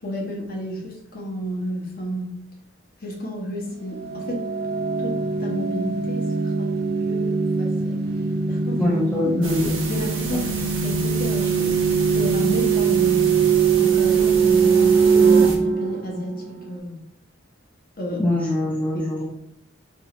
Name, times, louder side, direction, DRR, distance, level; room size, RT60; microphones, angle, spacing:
voice 1, 0.0-2.4 3.0-4.5 5.0-6.7 7.1-8.0 8.5-9.0 9.2-9.3 9.9-13.3 13.8-17.0 18.0-18.3 18.9-19.1, equal, 45° left, -2 dB, 0.9 m, -31 dB
sound 1, 4.0-16.7, right 6 dB, 50° right, 0.4 m, -21 dB
voice 2, 8.8-9.7 10.3-10.4 18.2-19.2, left 1 dB, 5° left, -5 dB, 0.5 m, -23 dB
sound 2, 9.4-15.6, right 3 dB, 85° right, 0.8 m, -32 dB
4.7 x 2.9 x 2.5 m, 0.76 s
head